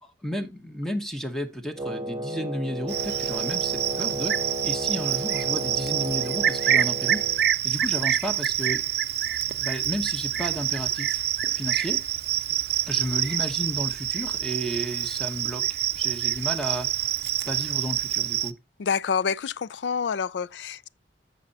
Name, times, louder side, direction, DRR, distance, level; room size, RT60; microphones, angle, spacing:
voice 1, 0.0-7.2 7.6-8.8 9.6-11.2 11.5-12.0 12.9-15.7 16.0-16.9 17.5-18.5, equal, 5° left, 0.8 m, -32 dB
Wind instrument woodwind instrument, 1.7-7.4, right 1 dB, 20° right, 0.9 m, -33 dB
Cricket, 2.9-18.5, right 12 dB, 65° right, 0.5 m, -27 dB
voice 2, 18.8-20.9, left 6 dB, 85° left, 0.4 m, -27 dB
14.5 x 5.4 x 2.7 m
head